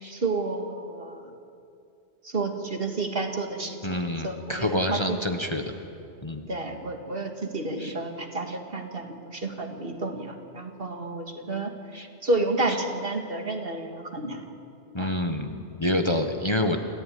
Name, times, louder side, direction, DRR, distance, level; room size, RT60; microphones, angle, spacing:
voice 1, 0.1-1.2 2.2-3.8 4.2-5.5 6.5-11.7 12.2-14.4 15.0-15.1, right 2 dB, 55° right, 4 dB, 2.2 m, -30 dB
voice 2, 3.8-5.6 6.2-6.4 7.8-7.9 11.9-12.1 14.9-16.8, left 1 dB, 25° left, 5 dB, 1.2 m, -27 dB
27.5 x 14.5 x 9.4 m, 2.6 s
omnidirectional pair, 1.2 m